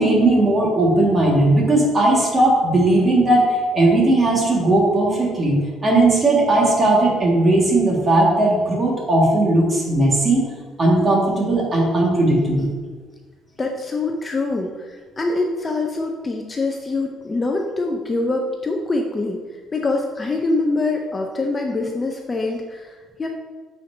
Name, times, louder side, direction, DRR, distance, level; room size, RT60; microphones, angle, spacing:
voice 1, 0.0-10.4 10.8-12.7, right 2 dB, 30° right, -3 dB, 1.8 m, -17 dB
voice 2, 13.6-19.4 19.7-23.3, left 2 dB, 25° left, 2 dB, 0.6 m, -24 dB
9.0 x 4.4 x 2.7 m, 1.4 s
cardioid pair, 115°, 0 cm